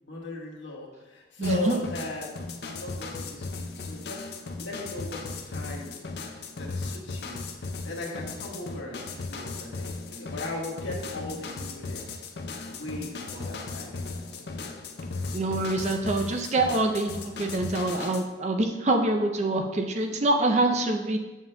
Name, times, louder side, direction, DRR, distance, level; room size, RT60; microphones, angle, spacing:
voice 1, 0.0-6.0 6.6-7.4 7.8-12.1 12.7-14.7 15.1-15.7, left 2 dB, 85° left, -3 dB, 1.5 m, -38 dB
sound 1, 1.4-18.3, left 3 dB, 55° left, 0.5 m, -37 dB
voice 2, 1.4-1.8 15.3-21.2, right 2 dB, 35° right, 4 dB, 0.5 m, -25 dB
7.3 x 7.1 x 2.2 m, 1.1 s
head